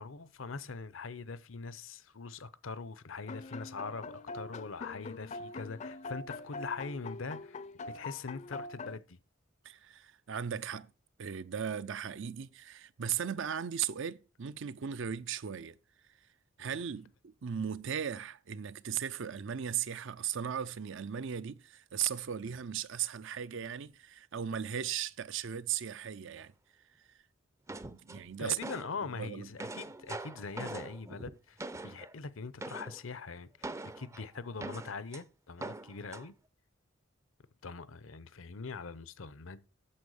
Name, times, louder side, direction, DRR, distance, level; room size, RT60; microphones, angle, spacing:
voice 1, 0.0-7.6 7.9-9.2 16.6-16.8 28.4-31.6 31.8-36.3 37.6-39.7, left 4 dB, 80° left, 0.8 m, -42 dB
sound 1, 3.3-9.0, left 3 dB, 35° left, 0.5 m, -43 dB
voice 2, 9.6-10.9 11.2-15.8 16.6-26.5 27.8-28.6 29.0-29.5, right 8 dB, 65° right, 0.5 m, -37 dB
sound 2, 27.7-29.0 29.4-32.1 32.6-33.0 33.6-35.2 35.6-36.3, right 2 dB, 15° right, 0.5 m, -43 dB
8.8 x 7.0 x 6.4 m
head